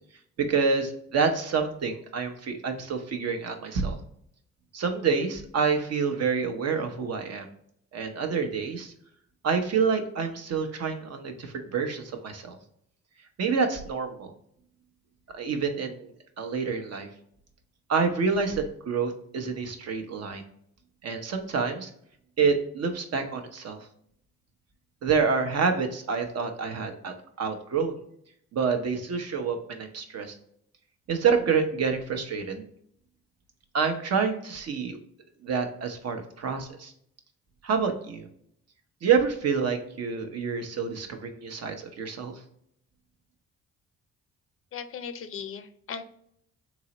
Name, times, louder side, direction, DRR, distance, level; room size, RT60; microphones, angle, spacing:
voice 1, 0.4-4.0 4.7-7.5 7.9-8.9 9.4-12.6 13.4-14.3 15.3-16.1 16.4-17.1 17.9-20.4 21.0-21.9 22.4-23.9 25.0-27.9 28.5-30.3 31.1-32.6 33.7-35.0 35.4-36.9 37.6-38.3 39.0-42.3, right 5 dB, 55° right, 6 dB, 0.7 m, -27 dB
voice 2, 44.7-46.0, left 7 dB, 45° left, 10 dB, 0.4 m, -37 dB
3.8 x 3.0 x 2.9 m, 0.69 s
cardioid pair, 90°, 30 cm